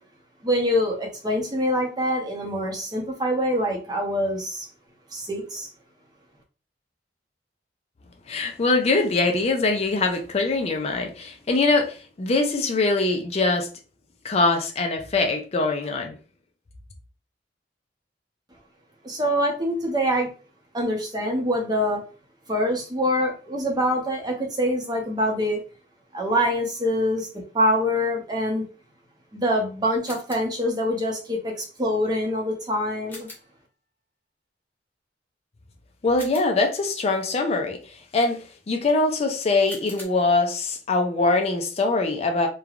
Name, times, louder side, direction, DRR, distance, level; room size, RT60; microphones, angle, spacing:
voice 1, 0.4-4.7 5.1-5.7 19.0-20.3 20.7-22.0 22.5-25.6 26.1-28.7 29.3-33.3, equal, 25° right, 0.7 m, -25 dB
voice 2, 8.3-13.7 14.2-16.1 36.0-42.5, left 3 dB, 35° left, 0.4 m, -23 dB
sound 1, 30.1-30.7 33.1-33.6 36.2-36.8 39.7-40.0, left 2 dB, 10° left, 0.7 m, -43 dB
3.1 x 2.2 x 2.4 m
head